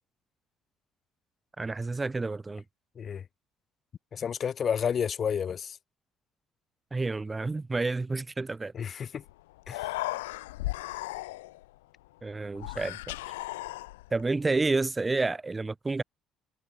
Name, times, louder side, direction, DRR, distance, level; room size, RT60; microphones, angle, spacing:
voice 1, 1.6-2.6 6.9-8.7 12.2-13.1 14.1-16.0, right 3 dB, 20° right, 1.7 m, -29 dB
voice 2, 4.1-5.8 8.7-9.2 9.7-9.9, left 7 dB, 50° left, 2.4 m, -31 dB
Human voice, 9.2-9.3 9.6-11.7 12.6-14.2, left 19 dB, 90° left, 0.4 m, -36 dB
hypercardioid pair, 60°, 0 cm